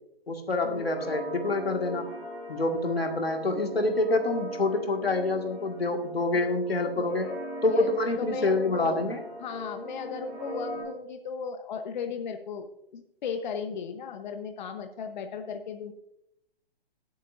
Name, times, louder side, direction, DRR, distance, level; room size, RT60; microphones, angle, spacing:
voice 1, 0.3-2.1 2.5-7.3 7.6-9.2, left 2 dB, 85° left, 4 dB, 2.0 m, -27 dB
sound 1, 0.6-10.8, equal, ahead, 3.5 m, -40 dB
voice 2, 8.2-9.0 9.4-12.7 12.9-15.9, left 6 dB, 50° left, 6 dB, 1.0 m, -36 dB
18.5 x 8.2 x 2.6 m, 0.80 s
figure-of-eight pair, 130°, 30 cm